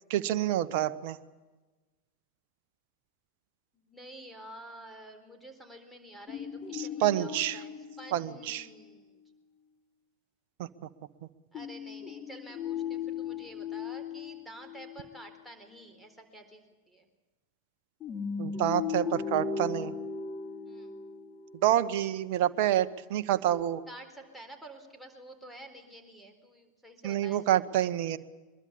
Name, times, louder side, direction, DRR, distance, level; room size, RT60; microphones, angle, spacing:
voice 1, 0.1-1.2 6.7-7.6 8.1-8.7 10.6-10.7 18.4-19.9 21.6-23.8 27.0-28.2, right 12 dB, 45° right, 11 dB, 1.1 m, -28 dB
voice 2, 3.7-9.2 11.5-17.1 20.6-21.0 23.9-27.6, right 1 dB, ahead, 6 dB, 4.2 m, -49 dB
sound 1, 6.3-8.9 11.5-15.3 18.0-21.8 23.5-23.6, left 6 dB, 30° left, 3.0 m, -37 dB
23.5 x 22.0 x 8.6 m, 1.2 s
figure-of-eight pair, 90°, 0 cm